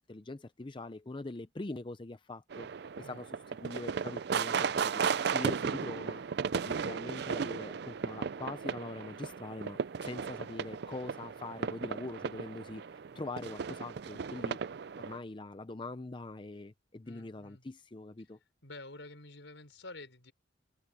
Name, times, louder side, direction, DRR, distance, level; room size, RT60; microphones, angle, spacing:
voice 1, 0.0-2.7 3.0-5.0 5.3-6.2 6.5-14.6 15.0-18.4, left 2 dB, 25° left, 0.6 m, -43 dB
sound 1, 2.5-15.2, right 6 dB, 60° right, 0.4 m, -35 dB
voice 2, 17.1-17.6 18.6-20.3, left 2 dB, 80° left, 5.1 m, -49 dB
head